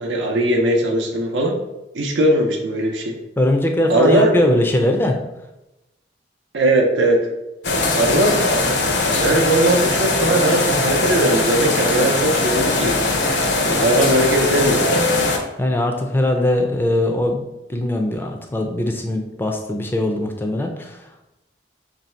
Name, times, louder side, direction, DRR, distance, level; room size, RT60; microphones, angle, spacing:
voice 1, 0.0-1.5 1.9-3.1 3.9-4.5 6.5-7.3 7.9-8.6 9.1-13.0 13.7-15.2, right 1 dB, 85° right, 2 dB, 0.6 m, -19 dB
voice 2, 3.4-5.2 15.6-17.4 17.7-21.0, left 1 dB, 10° left, 3 dB, 0.4 m, -20 dB
sound 1, 7.6-15.4, left 2 dB, 70° left, 0.6 m, -20 dB
3.1 x 2.6 x 4.3 m, 0.95 s
head